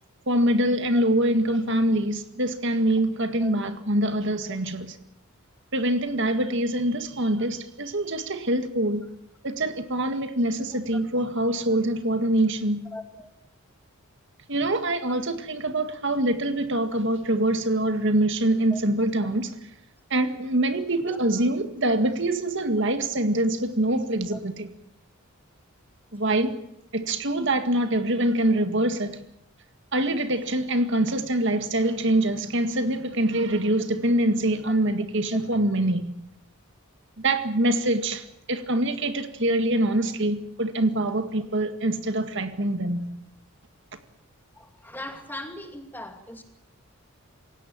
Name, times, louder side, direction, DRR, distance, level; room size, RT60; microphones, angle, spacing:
voice 1, 0.3-4.9 5.7-9.0 9.4-12.8 14.5-19.5 20.1-24.7 26.1-26.6 26.9-29.2 29.9-36.1 37.2-43.1, right 1 dB, 55° right, 1.9 m, -24 dB
voice 2, 12.9-13.3 18.7-18.8 21.1-21.2 24.3-24.4 28.2-28.3 34.6-34.7 44.5-46.4, left 1 dB, 10° left, 2.4 m, -39 dB
28.0 x 17.0 x 8.9 m
head